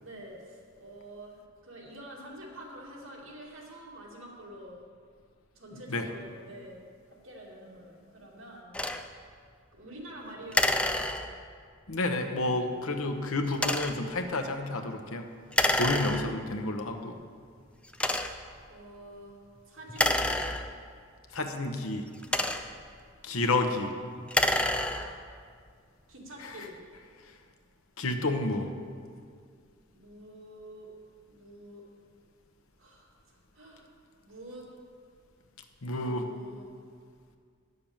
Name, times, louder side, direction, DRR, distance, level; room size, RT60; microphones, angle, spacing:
voice 1, 0.0-4.8 5.5-6.8 7.1-8.7 9.7-11.2 18.7-19.4 19.7-20.4 21.3-21.4 22.4-22.6 24.7-25.2 26.1-26.8 29.9-30.9 31.3-31.8 32.8-33.1 33.5-33.9 34.2-34.7 35.8-36.7, right 1 dB, 65° right, -4 dB, 2.6 m, -47 dB
voice 2, 5.7-6.1 11.9-15.2 15.7-17.2 21.3-22.1 23.2-23.9 26.4-26.6 28.0-28.7 35.8-36.3, left 2 dB, 80° left, 5 dB, 1.0 m, -30 dB
sound 1, 8.7-9.0 10.5-11.6 13.5-14.1 15.5-16.5 17.2-17.3 17.9-18.5 19.9-21.0 22.0-22.9 24.2-25.3, left 1 dB, 5° left, 0.4 m, -28 dB
10.5 x 6.7 x 7.3 m, 2.1 s
head